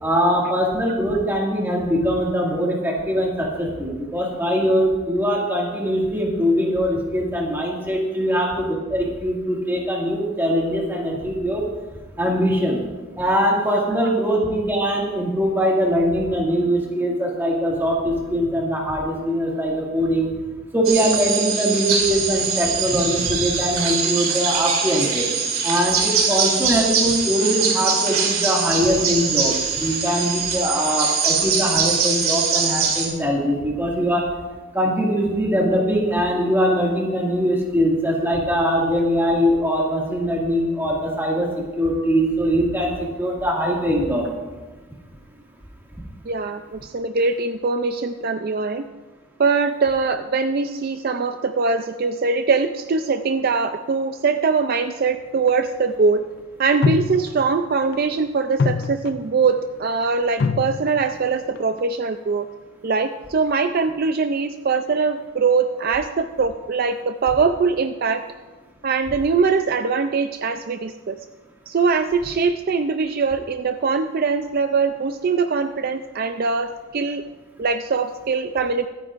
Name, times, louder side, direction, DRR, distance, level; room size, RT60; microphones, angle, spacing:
voice 1, 0.0-11.6 12.2-12.8 13.2-20.3 20.7-25.3 25.6-34.2 34.7-41.5 41.8-44.3, equal, 10° right, -3 dB, 2.0 m, -22 dB
sound 1, 20.8-33.1, right 5 dB, 85° right, 2.4 m, -22 dB
voice 2, 46.3-48.8 49.4-56.2 56.6-62.4 62.8-68.2 68.8-71.2 71.7-77.2 77.6-78.9, right 4 dB, 45° right, 8 dB, 0.4 m, -22 dB
sound 2, 55.5-55.6 56.8-57.6 57.9-58.2 58.6-59.5 60.4-61.2 61.6-61.8, left 4 dB, 50° left, 0.4 m, -24 dB
23.0 x 9.4 x 2.5 m, 1.3 s
head